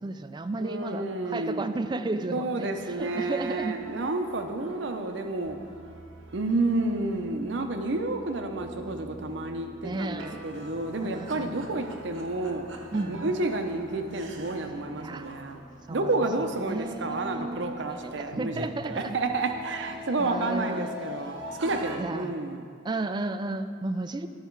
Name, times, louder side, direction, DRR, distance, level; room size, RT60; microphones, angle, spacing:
voice 1, 0.0-3.8 9.8-10.4 11.0-11.7 12.9-13.3 15.0-15.3 15.9-19.2 20.2-20.9 22.0-22.3 22.8-24.3, right 2 dB, 25° right, 10 dB, 0.3 m, -33 dB
voice 2, 0.6-1.7 2.3-5.6 6.3-12.7 13.1-15.6 15.9-22.6, right 2 dB, 65° right, 6 dB, 0.7 m, -30 dB
sound 1, 2.7-22.0, equal, 85° right, 1.1 m, -44 dB
12.5 x 5.6 x 4.6 m, 2.3 s
head